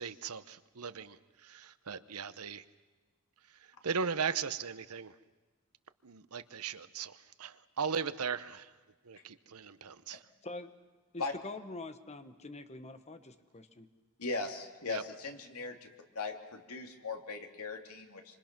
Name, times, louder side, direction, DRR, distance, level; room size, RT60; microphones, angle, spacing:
voice 1, 0.0-2.7 3.5-5.1 6.0-8.7 9.0-10.2 14.9-15.0, right 6 dB, 75° right, 14 dB, 0.9 m, -38 dB
voice 2, 11.1-13.9, left 2 dB, 30° left, 10 dB, 1.2 m, -45 dB
voice 3, 14.2-15.9 16.1-18.4, left 3 dB, 75° left, 4 dB, 2.8 m, -39 dB
26.5 x 26.0 x 6.1 m, 1.3 s
head